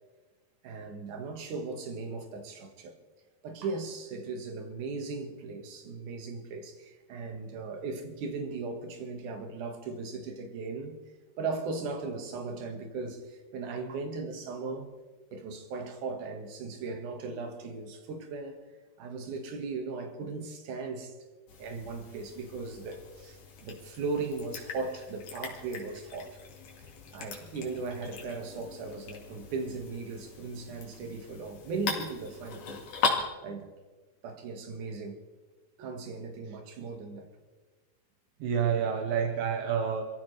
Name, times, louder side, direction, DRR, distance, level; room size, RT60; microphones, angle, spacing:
voice 1, 0.6-2.9 3.4-11.0 11.4-14.9 15.3-18.6 19.0-21.1 21.6-26.4 27.1-33.1 33.4-33.7 34.2-35.2 35.8-37.3, right 4 dB, 65° right, 3.1 m, -37 dB
sound 1, 21.5-33.2, left 4 dB, 65° left, 3.7 m, -39 dB
voice 2, 38.4-40.0, right 7 dB, 80° right, 2.9 m, -29 dB
27.0 x 15.5 x 3.3 m
omnidirectional pair, 4.0 m